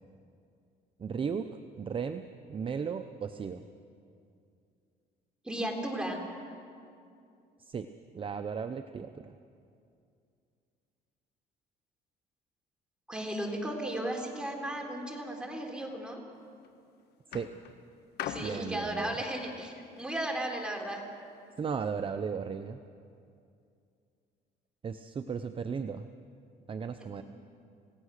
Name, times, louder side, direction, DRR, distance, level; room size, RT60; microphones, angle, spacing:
voice 1, 1.0-3.6 7.6-7.9 8.1-9.4 17.3-17.5 18.4-19.2 21.6-22.8 24.8-26.1 26.7-27.2, right 6 dB, 30° right, 9 dB, 0.7 m, -36 dB
voice 2, 5.4-6.2 13.1-16.2 18.2-21.0 27.2-27.3, right 1 dB, 5° right, 1 dB, 3.7 m, -35 dB
sound 1, 16.3-16.7 17.3-20.5 21.4-21.5, left 9 dB, 75° left, 1.4 m, -43 dB
28.5 x 17.0 x 6.6 m, 2.5 s
cardioid pair, 110°, 17 cm